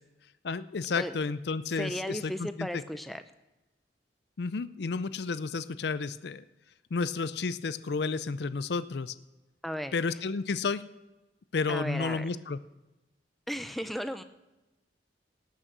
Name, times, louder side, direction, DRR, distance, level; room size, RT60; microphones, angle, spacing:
voice 1, 0.4-2.8 4.4-6.4 6.9-9.1 9.9-10.8 11.5-12.6, left 4 dB, 65° left, 14 dB, 0.5 m, -31 dB
voice 2, 1.7-3.2 9.6-9.9 11.7-12.3 13.5-14.2, equal, ahead, 10 dB, 0.5 m, -35 dB
18.0 x 6.4 x 6.6 m, 1.0 s
head